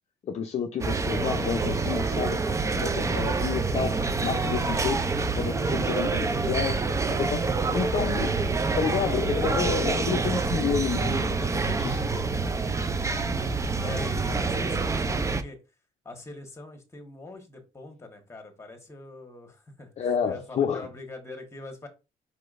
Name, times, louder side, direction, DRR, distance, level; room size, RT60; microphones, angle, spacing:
voice 1, 0.2-8.3 8.8-12.1 20.0-20.9, left 7 dB, 40° left, 0.6 m, -30 dB
sound 1, 0.8-15.4, right 4 dB, 20° right, 0.5 m, -27 dB
voice 2, 13.8-15.6 16.0-19.9 20.2-21.9, left 2 dB, 15° left, 1.3 m, -43 dB
4.8 x 4.2 x 2.5 m
cardioid pair, 110°, 17 cm